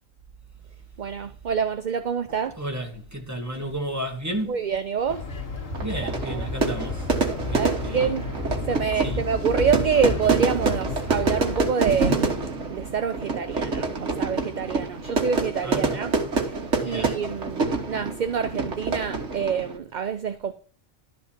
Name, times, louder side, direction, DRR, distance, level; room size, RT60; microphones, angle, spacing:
voice 1, 1.0-2.6 4.5-5.3 6.0-6.5 7.5-8.2 8.7-20.5, right 6 dB, 45° right, 0.7 m, -27 dB
voice 2, 2.3-4.6 5.8-8.2 8.9-9.3 15.6-16.1 16.8-17.2, right 1 dB, 15° right, 1.9 m, -33 dB
sound 1, 5.1-11.7, left 3 dB, 80° left, 2.1 m, -32 dB
Fire / Fireworks, 5.7-19.8, right 4 dB, 65° right, 1.9 m, -27 dB
12.0 x 5.1 x 7.4 m
omnidirectional pair, 1.3 m